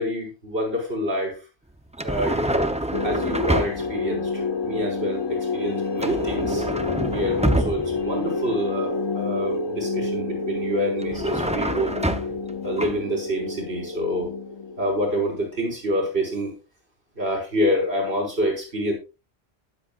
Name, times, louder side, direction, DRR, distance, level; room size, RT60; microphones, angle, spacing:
voice 1, 0.0-1.4 2.0-2.7 3.0-6.6 7.1-7.4 7.6-11.9 12.6-14.3 14.8-16.5 17.2-18.9, equal, 75° right, -1 dB, 5.4 m, -27 dB
sound 1, 1.9-4.0 6.0-8.1 11.0-12.5 12.8-13.0, right 1 dB, 10° right, 0.6 m, -26 dB
sound 2, 2.9-15.7, left 3 dB, 40° left, 0.4 m, -29 dB
20.5 x 7.6 x 2.4 m, 0.30 s
omnidirectional pair, 1.1 m